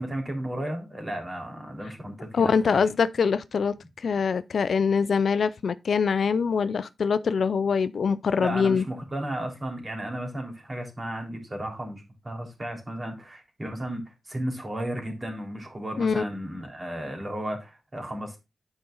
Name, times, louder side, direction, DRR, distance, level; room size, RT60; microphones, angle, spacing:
voice 1, 0.0-2.8 8.4-18.4, right 1 dB, 30° right, 3.6 m, -34 dB
voice 2, 2.3-3.7 4.0-8.8 16.0-16.2, left 5 dB, 70° left, 0.5 m, -24 dB
9.6 x 5.2 x 3.9 m
cardioid pair, 70°, 0 cm